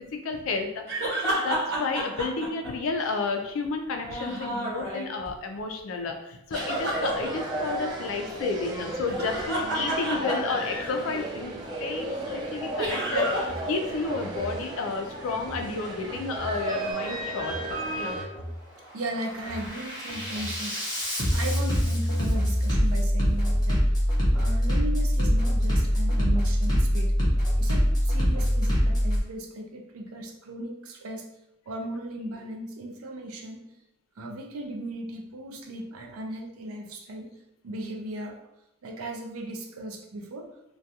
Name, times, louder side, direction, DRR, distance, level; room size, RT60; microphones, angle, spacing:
voice 1, 0.0-11.5 11.8-18.2, left 4 dB, 70° left, 4 dB, 0.4 m, -31 dB
sound 1, 0.9-3.2 3.9-5.3 6.5-7.3 9.0-11.0 12.8-13.6 13.9-14.0 16.9-17.0, right 1 dB, 55° right, 0.8 m, -30 dB
sound 2, 6.5-18.2, right 1 dB, 20° right, 0.3 m, -34 dB
Bass drum, 13.5-13.6 14.1-14.6 15.4-15.6 16.1-16.6 17.4-17.6 18.1-18.6 19.0-29.2, equal, 20° left, 0.7 m, -25 dB
voice 2, 18.9-20.8 21.3-23.8 24.3-27.1 27.6-31.3 31.7-33.6 34.2-37.3 37.6-38.4 38.8-40.5, right 1 dB, 85° right, 2 dB, 0.5 m, -36 dB
2.3 x 2.2 x 2.7 m, 0.85 s
head